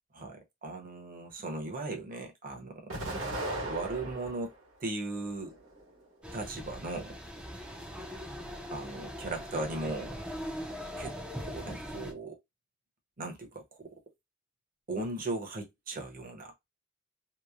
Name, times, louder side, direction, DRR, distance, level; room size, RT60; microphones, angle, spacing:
voice 1, 0.1-3.0 3.6-4.5 4.8-5.6 6.3-7.1 8.7-10.1 11.0-11.1 11.4-12.4 13.2-13.9 14.9-16.5, right 2 dB, 45° right, 0.8 m, -37 dB
Explosion, 2.9-4.5 5.1-6.0, right 1 dB, 75° right, 1.3 m, -37 dB
sound 1, 6.2-12.1, equal, 5° right, 0.4 m, -41 dB
2.9 x 2.0 x 2.4 m
head